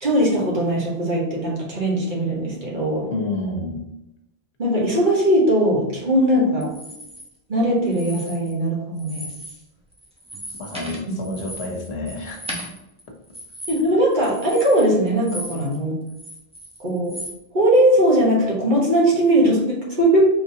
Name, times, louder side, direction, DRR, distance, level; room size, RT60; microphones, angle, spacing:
voice 1, 0.0-3.1 4.6-6.7 7.5-9.3 13.7-16.0 16.8-17.2 17.5-20.3, right 1 dB, 50° right, -3 dB, 1.3 m, -19 dB
voice 2, 3.1-3.8 10.6-12.5, left 2 dB, 80° left, 2 dB, 1.1 m, -29 dB
sound 1, 6.6-7.2 7.9-8.7 9.0-9.6 9.9-15.8 16.1-17.4, equal, 5° right, 0.7 m, -37 dB
4.9 x 3.2 x 2.7 m, 0.86 s
omnidirectional pair, 1.1 m